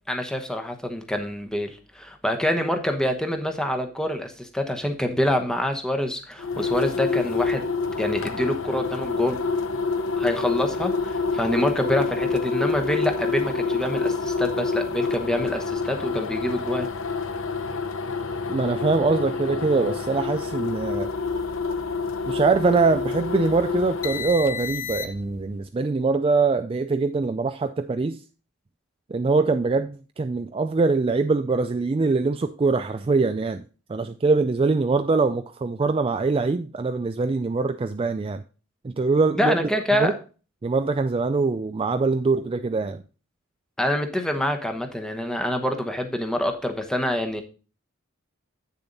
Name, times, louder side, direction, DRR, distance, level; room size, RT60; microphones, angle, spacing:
voice 1, 0.1-7.6 8.0-9.4 10.2-16.9 39.4-40.2 43.8-47.4, left 1 dB, 5° left, 1.0 m, -26 dB
sound 1, 6.4-25.4, left 4 dB, 65° left, 0.7 m, -27 dB
voice 2, 18.5-21.1 22.3-28.2 29.1-33.6 33.9-38.4 38.8-39.7 40.0-40.1 40.6-43.0, right 4 dB, 25° right, 0.3 m, -23 dB
8.4 x 6.9 x 4.0 m
head